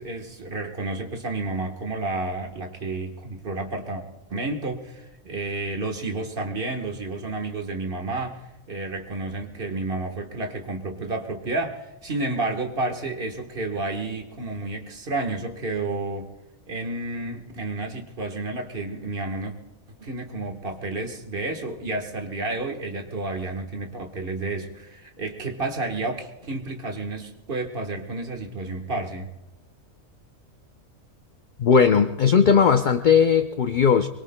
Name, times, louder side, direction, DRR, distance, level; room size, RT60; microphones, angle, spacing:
voice 1, 0.0-4.0 4.3-8.4 8.7-16.3 16.7-19.5 20.0-29.3, right 2 dB, 45° right, 3 dB, 1.5 m, -31 dB
voice 2, 31.6-34.1, left 6 dB, 60° left, 8 dB, 0.5 m, -18 dB
24.5 x 22.0 x 2.2 m, 1.0 s
omnidirectional pair, 1.4 m